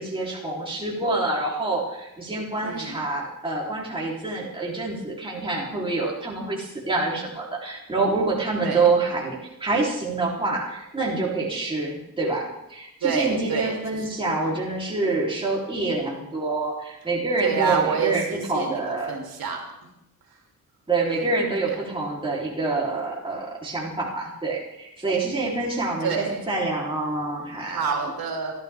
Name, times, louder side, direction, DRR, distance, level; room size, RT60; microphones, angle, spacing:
voice 1, 0.0-19.1 20.9-27.8, right 3 dB, 15° right, -5 dB, 3.4 m, -26 dB
voice 2, 2.5-3.0 8.6-8.9 13.0-14.1 17.4-19.6 21.7-21.8 26.0-26.4 27.7-28.5, right 5 dB, 75° right, 0 dB, 3.2 m, -27 dB
27.0 x 12.0 x 3.5 m, 0.86 s
wide cardioid pair, 155°, 36 cm